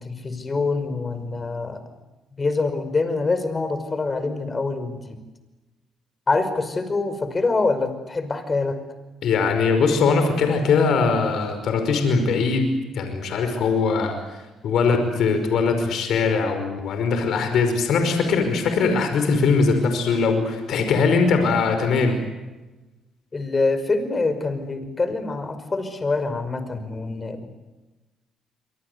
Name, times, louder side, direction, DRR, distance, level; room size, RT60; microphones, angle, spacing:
voice 1, 0.0-1.8 2.4-5.2 6.3-8.8 23.3-27.5, left 3 dB, 30° left, 10 dB, 5.4 m, -25 dB
voice 2, 9.2-12.7 13.0-14.1 14.6-22.2, left 4 dB, 70° left, 7 dB, 5.3 m, -21 dB
27.5 x 24.5 x 8.2 m, 1.1 s
cardioid pair, 80°, 0 cm